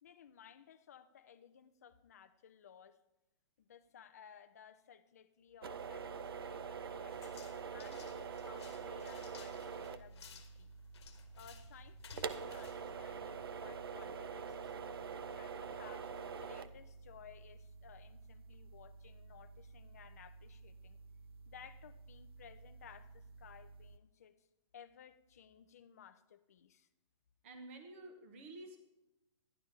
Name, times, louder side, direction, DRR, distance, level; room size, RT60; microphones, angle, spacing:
voice 1, 0.0-3.0 3.6-10.7 11.4-21.0 21.5-24.3 24.7-26.9, left 8 dB, 30° left, 10 dB, 0.4 m, -59 dB
sound 1, 5.6-24.0, right 6 dB, 50° right, 0.5 m, -47 dB
sound 2, 7.1-13.7, left 5 dB, 55° left, 1.3 m, -57 dB
voice 2, 27.4-28.8, right 2 dB, 25° right, 5 dB, 1.0 m, -51 dB
12.0 x 11.0 x 3.3 m, 0.95 s
hypercardioid pair, 180°, 16 cm